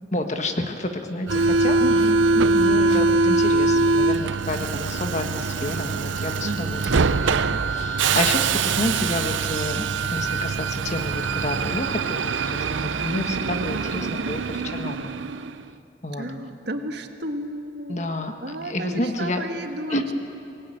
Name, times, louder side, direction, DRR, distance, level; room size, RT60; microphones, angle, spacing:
voice 1, 0.1-1.8 2.6-15.1 16.0-16.3 17.9-19.4 19.9-20.1, left 1 dB, 40° left, 5 dB, 1.5 m, -29 dB
Subway metro underground, 1.3-15.6, right 4 dB, 90° right, 0.7 m, -23 dB
voice 2, 1.8-2.7 6.4-7.1 16.1-18.1 18.4-20.0, right 1 dB, 65° right, 6 dB, 1.5 m, -32 dB
24.5 x 19.0 x 9.1 m, 2.8 s
head